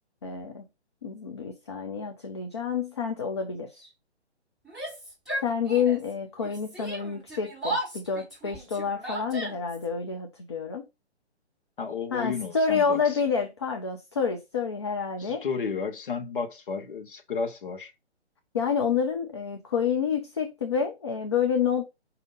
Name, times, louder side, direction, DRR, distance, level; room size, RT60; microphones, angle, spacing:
voice 1, 0.2-0.6 1.0-3.9 5.4-10.8 12.1-15.4 18.5-21.8, left 6 dB, 25° left, 0.5 m, -28 dB
Yell, 4.6-6.1 6.4-9.8, right 1 dB, ahead, 2.5 m, -35 dB
voice 2, 11.8-13.2 15.2-17.9, left 5 dB, 50° left, 1.1 m, -32 dB
5.0 x 2.8 x 3.7 m
figure-of-eight pair, 135°, 34 cm